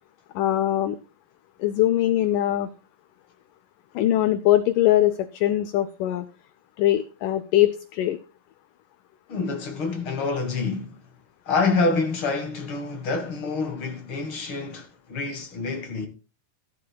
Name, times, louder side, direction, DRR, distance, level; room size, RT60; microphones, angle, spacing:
voice 1, 0.4-1.0 1.6-2.7 4.0-6.3 6.8-8.2, left 13 dB, 80° left, 1.9 m, -22 dB
voice 2, 9.3-11.0 11.4-16.1, left 4 dB, 50° left, 1.7 m, -27 dB
16.0 x 11.5 x 2.2 m
omnidirectional pair, 4.3 m